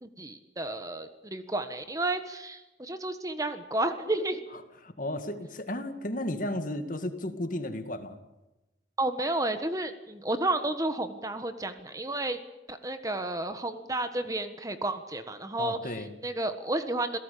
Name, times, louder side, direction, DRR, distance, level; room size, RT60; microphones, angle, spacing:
voice 1, 0.0-4.4 9.0-12.4 12.7-16.0 16.2-17.2, right 2 dB, 20° right, 9 dB, 1.4 m, -31 dB
voice 2, 4.8-8.2 15.6-16.1, left 1 dB, 50° left, 8 dB, 2.1 m, -34 dB
28.0 x 17.5 x 8.6 m, 1.0 s
head